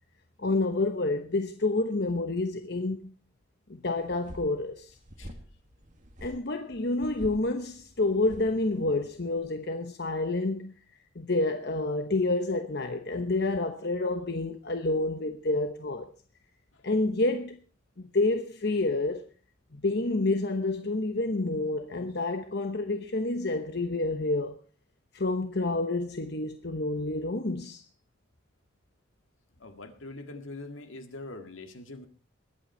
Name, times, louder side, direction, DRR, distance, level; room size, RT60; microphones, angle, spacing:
voice 1, 0.4-3.1 3.7-4.9 6.2-10.7 11.1-16.1 16.8-17.6 18.1-19.3 19.7-24.6 25.1-27.8, left 2 dB, 55° left, 0.9 m, -28 dB
sound 1, 4.0-9.4, equal, 40° right, 2.0 m, -48 dB
voice 2, 29.6-32.1, left 2 dB, 80° left, 1.9 m, -43 dB
21.0 x 8.8 x 4.4 m
head